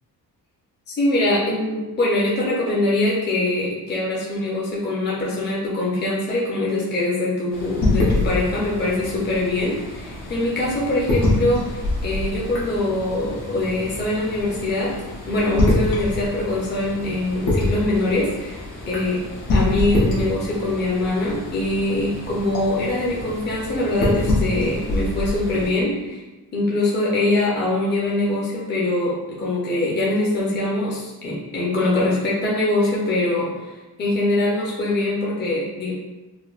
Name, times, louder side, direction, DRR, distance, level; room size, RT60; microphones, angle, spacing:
voice 1, 0.9-14.9 15.3-19.2 19.5-26.2 26.5-33.7 34.0-35.9, left 2 dB, 30° left, -6 dB, 0.7 m, -23 dB
sound 1, 7.5-25.7, left 2 dB, 80° left, 1.2 m, -26 dB
5.0 x 2.1 x 2.4 m, 1.1 s
cardioid pair, 140°, 37 cm